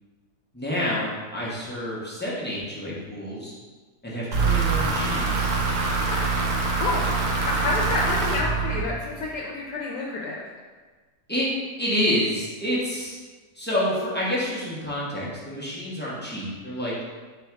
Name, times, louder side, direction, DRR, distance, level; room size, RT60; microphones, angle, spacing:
voice 1, 0.5-3.5 4.0-5.5 11.3-11.5 11.8-13.2 13.5-16.9, equal, 10° left, -8 dB, 0.5 m, -28 dB
sound 1, 4.3-9.3, right 4 dB, 70° right, 1.2 m, -24 dB
voice 2, 6.7-10.4, left 2 dB, 85° left, -3 dB, 1.2 m, -29 dB
3.4 x 3.1 x 4.5 m, 1.4 s
omnidirectional pair, 1.7 m